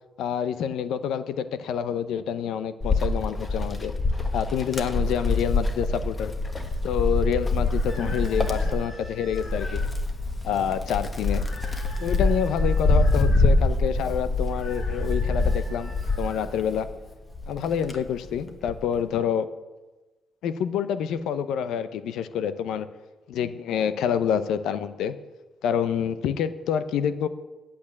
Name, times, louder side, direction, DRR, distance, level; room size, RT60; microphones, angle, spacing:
voice 1, 0.2-3.9 4.3-6.3 6.8-9.8 10.4-11.4 12.0-16.9 17.5-19.5 20.4-22.9 23.3-25.1 25.6-27.3, left 8 dB, 80° left, 13 dB, 0.7 m, -27 dB
Wind, 2.8-16.9 17.4-18.9, left 2 dB, 25° left, 1.4 m, -25 dB
sound 1, 7.6-9.9 11.3-13.5 14.4-16.5, left 2 dB, 45° left, 5.1 m, -44 dB
8.6 x 8.5 x 8.5 m, 1.2 s
cardioid pair, 90°, 0 cm